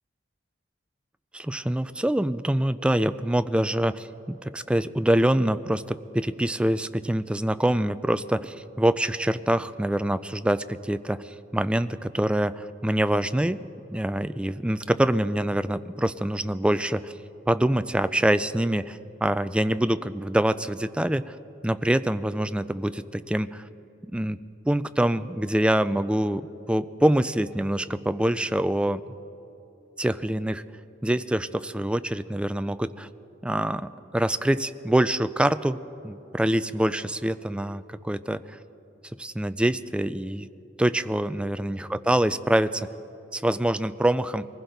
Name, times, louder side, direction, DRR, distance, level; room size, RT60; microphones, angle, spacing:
voice 1, 1.3-13.6 13.9-17.1 17.5-21.4 21.6-23.7 24.0-29.0 30.0-30.6 31.0-33.1 33.4-38.6 39.2-40.5 40.8-42.9 43.3-44.5, right 1 dB, 5° right, 13 dB, 0.3 m, -25 dB
23.0 x 15.5 x 3.9 m, 3.0 s
head